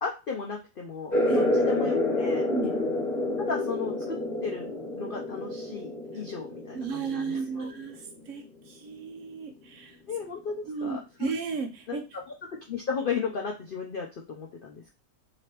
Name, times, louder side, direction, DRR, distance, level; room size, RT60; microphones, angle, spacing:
voice 1, 0.0-2.5 3.4-4.2 4.4-4.6 4.9-7.7 10.1-11.3 11.9-12.0 12.7-14.9, left 5 dB, 70° left, 1 dB, 0.5 m, -35 dB
sound 1, 1.1-8.3, left 1 dB, 40° left, 1.3 m, -29 dB
voice 2, 6.7-10.0 10.7-12.0, right 5 dB, 70° right, 6 dB, 0.8 m, -34 dB
3.2 x 2.9 x 2.9 m, 0.28 s
omnidirectional pair, 1.6 m